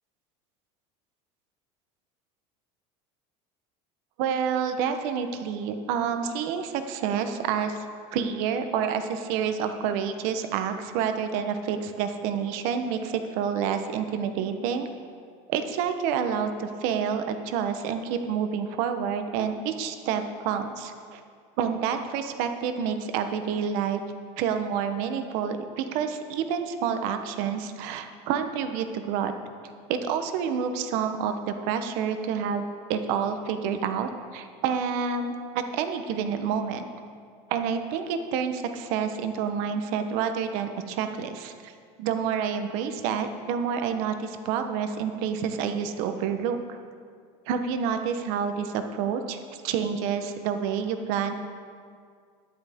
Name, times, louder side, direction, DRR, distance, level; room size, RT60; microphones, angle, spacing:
voice 1, 4.2-7.8 8.1-14.9 15.5-21.2 21.6-24.0 24.4-29.3 29.9-36.9 37.5-41.7 42.0-46.8 47.5-51.3, right 7 dB, 65° right, 8 dB, 1.0 m, -28 dB
12.5 x 10.5 x 3.6 m, 2.1 s
supercardioid pair, 135°, 15 cm